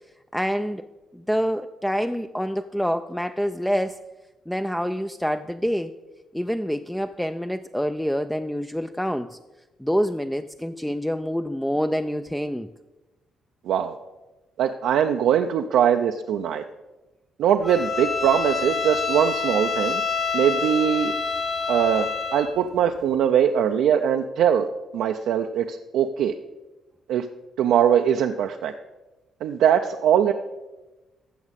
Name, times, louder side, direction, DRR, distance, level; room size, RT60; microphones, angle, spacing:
voice 1, 0.3-0.9 1.1-4.0 4.5-5.9 6.3-9.4 9.8-12.7, equal, 5° left, 9 dB, 0.3 m, -26 dB
voice 2, 13.7-14.0 14.6-16.6 17.4-20.0 20.3-21.1 21.7-24.7 24.9-26.3 27.1-27.3 27.6-28.7 29.4-30.3, right 9 dB, 80° right, 5 dB, 0.4 m, -21 dB
Bowed string instrument, 17.6-22.5, left 5 dB, 30° left, 1.7 m, -27 dB
15.0 x 6.1 x 4.1 m, 1.1 s
cardioid pair, 85°, 0 cm